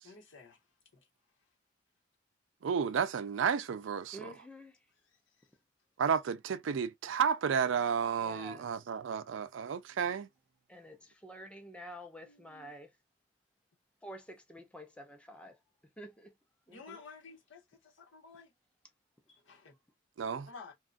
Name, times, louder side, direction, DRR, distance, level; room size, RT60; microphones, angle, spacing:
voice 1, 0.0-0.6 0.9-1.1 5.1-5.2 12.2-12.7 16.7-18.5 19.3-19.8 20.5-20.7, left 4 dB, 90° left, 1.2 m, -53 dB
voice 2, 2.6-4.3 6.0-10.3 20.2-20.5, right 7 dB, 80° right, 0.4 m, -32 dB
voice 3, 4.1-4.8 8.2-8.7 10.7-12.9 14.0-15.6 16.0-16.3 16.7-17.0, equal, 5° left, 0.5 m, -49 dB
2.8 x 2.3 x 2.5 m
head